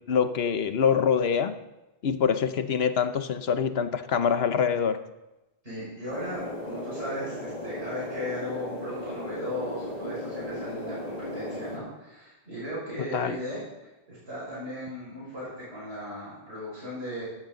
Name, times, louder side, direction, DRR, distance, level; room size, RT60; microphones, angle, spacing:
voice 1, 0.1-1.5 2.0-5.0 13.0-13.4, left 7 dB, 75° left, 11 dB, 1.1 m, -25 dB
voice 2, 5.6-17.2, equal, 85° right, -9 dB, 6.0 m, -37 dB
sound 1, 6.1-11.8, left 1 dB, 40° left, 2.2 m, -36 dB
14.5 x 12.5 x 3.9 m, 1.0 s
omnidirectional pair, 1.0 m